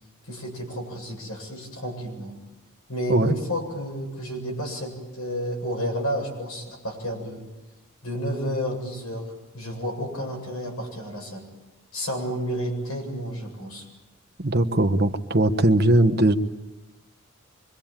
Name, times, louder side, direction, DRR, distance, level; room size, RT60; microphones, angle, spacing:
voice 1, 0.3-2.4 2.9-7.4 8.0-9.3 9.5-11.4 11.9-13.8, equal, 75° left, 2 dB, 7.9 m, -31 dB
voice 2, 14.4-16.3, right 1 dB, 45° right, 7 dB, 1.1 m, -20 dB
25.0 x 23.5 x 9.0 m, 1.1 s
head